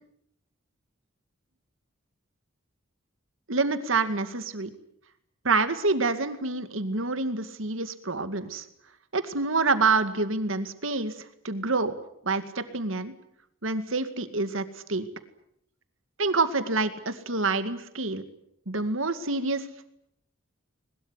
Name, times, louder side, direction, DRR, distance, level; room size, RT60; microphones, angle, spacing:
voice 1, 3.5-4.7 5.4-8.6 9.1-11.1 11.4-11.9 12.3-13.1 13.6-15.1 16.2-18.2 18.7-19.6, right 3 dB, 80° right, 10 dB, 2.2 m, -27 dB
22.0 x 21.0 x 9.6 m, 0.74 s
head